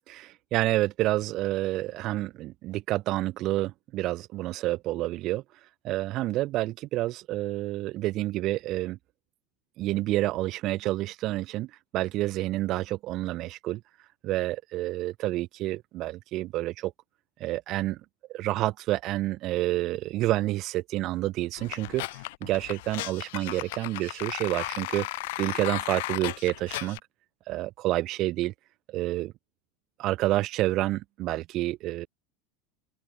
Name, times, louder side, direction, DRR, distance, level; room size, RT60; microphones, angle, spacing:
voice 1, 0.1-5.4 5.8-9.0 9.8-13.8 14.2-16.9 17.4-18.0 18.3-27.0 27.5-28.5 28.9-29.3 30.0-32.1, right 16 dB, 45° right, 0.5 m, -29 dB
sound 1, 21.6-27.0, left 21 dB, 60° left, 1.5 m, -35 dB
open air
figure-of-eight pair, 80°, 0 cm